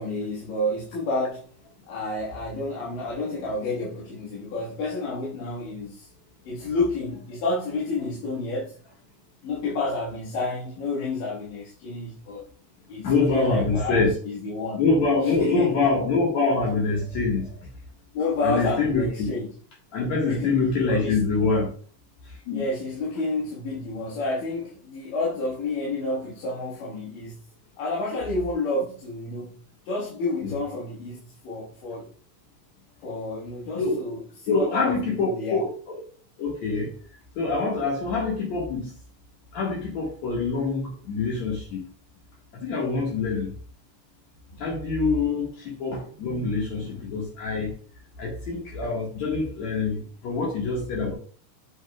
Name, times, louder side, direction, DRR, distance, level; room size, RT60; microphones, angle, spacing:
voice 1, 0.0-1.5 1.9-6.1 6.5-8.8 9.4-12.4 12.9-14.9 15.2-15.9 18.1-19.5 20.2-20.5 20.9-21.2 22.5-27.4 27.8-29.6 29.9-32.1 33.0-35.7 44.5-44.7 46.8-47.0, left 2 dB, 85° left, 3.3 m, -30 dB
voice 2, 13.0-14.1 14.8-17.6 18.4-19.3 19.9-21.7 22.3-22.7 30.4-30.5 33.8-34.0 34.5-36.0 36.4-36.9 37.4-39.0 39.5-41.8 42.5-43.5 44.6-47.7 48.2-51.1, left 4 dB, 60° left, 2.9 m, -25 dB
7.9 x 6.9 x 2.4 m
omnidirectional pair, 3.7 m